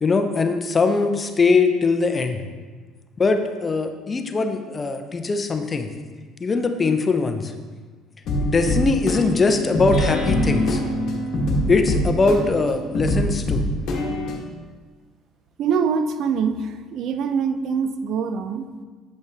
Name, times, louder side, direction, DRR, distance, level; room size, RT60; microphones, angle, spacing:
voice 1, 0.0-2.4 3.2-5.9 6.4-7.5 8.4-10.8 11.7-13.7, left 4 dB, 30° left, 7 dB, 0.7 m, -21 dB
sound 1, 8.3-14.4, left 1 dB, 60° left, 1.3 m, -24 dB
voice 2, 15.6-18.7, right 6 dB, 60° right, 8 dB, 0.5 m, -24 dB
7.9 x 5.4 x 3.5 m, 1.4 s
supercardioid pair, 85°, 0 cm